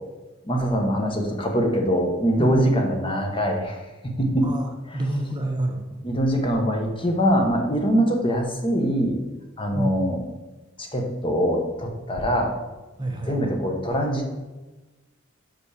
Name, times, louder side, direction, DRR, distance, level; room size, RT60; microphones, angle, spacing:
voice 1, 0.5-3.8 4.0-4.5 6.0-9.2 9.6-10.2 10.8-12.5 13.3-14.3, equal, 25° left, 2 dB, 1.0 m, -23 dB
voice 2, 4.4-6.0 9.7-9.9 13.0-13.4, right 1 dB, 20° right, 3 dB, 0.7 m, -28 dB
5.5 x 5.3 x 4.9 m, 1.1 s
head